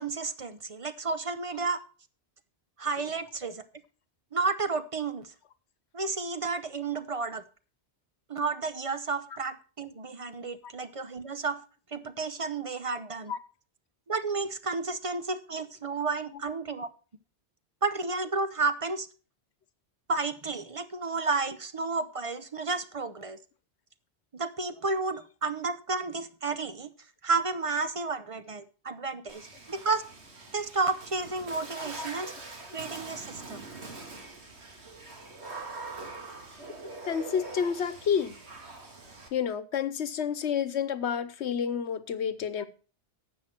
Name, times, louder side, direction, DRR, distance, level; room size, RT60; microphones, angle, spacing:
voice 1, 0.0-1.8 2.8-3.6 4.3-5.3 5.9-7.4 8.3-11.6 11.9-13.3 14.1-16.9 17.8-19.1 20.1-23.4 24.3-26.9 27.2-30.0 30.5-32.3 32.7-33.6, right 4 dB, 35° right, 0.7 m, -31 dB
Water / Splash splatter, 29.3-39.3, right 3 dB, 75° right, 2.3 m, -43 dB
voice 2, 37.1-38.4 39.3-42.7, left 7 dB, 80° left, 1.2 m, -29 dB
12.5 x 7.9 x 4.4 m
omnidirectional pair, 1.1 m